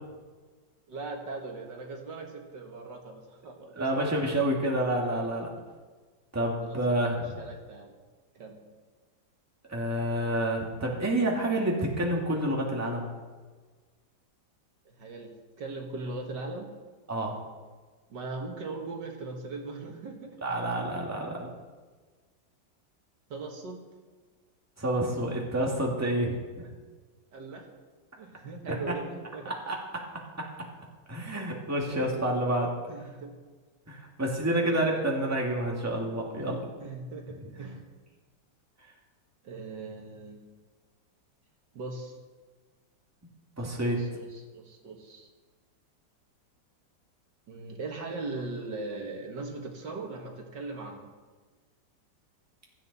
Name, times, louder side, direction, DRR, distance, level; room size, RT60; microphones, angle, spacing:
voice 1, 0.9-3.9 6.6-7.9 8.4-8.6 14.9-15.3 15.6-16.7 18.1-20.4 23.3-23.8 27.3-27.6 28.2-29.5 31.9-32.4 32.9-33.3 34.6-35.1 36.8-37.8 39.4-40.4 41.7-42.1 43.8-45.3 47.5-51.1, right 3 dB, 70° right, 2 dB, 2.2 m, -39 dB
voice 2, 3.8-5.5 6.3-7.3 9.7-13.1 17.1-17.4 20.4-21.5 24.8-26.4 29.5-29.8 31.1-32.7 33.9-36.6 43.6-44.0, right 1 dB, 10° right, -1 dB, 2.0 m, -28 dB
16.0 x 12.5 x 4.1 m, 1.4 s
omnidirectional pair, 2.0 m